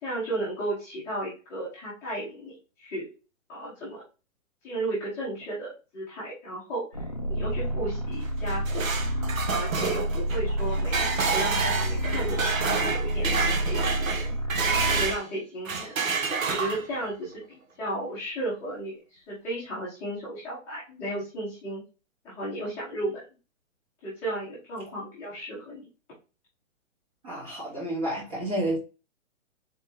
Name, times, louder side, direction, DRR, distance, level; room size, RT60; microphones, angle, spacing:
voice 1, 0.0-3.1 3.5-4.0 4.6-8.9 9.5-14.5 14.9-16.0 16.5-21.8 22.2-23.2 24.0-25.9, right 1 dB, 5° left, 0.8 m, -34 dB
sound 1, 6.9-15.2, right 1 dB, 30° left, 0.4 m, -29 dB
sound 2, 8.2-15.3 15.7-17.1, right 5 dB, 80° right, 1.1 m, -28 dB
voice 2, 27.2-28.8, right 1 dB, 25° right, 1.6 m, -30 dB
4.1 x 3.7 x 3.3 m
hypercardioid pair, 175°, 40 cm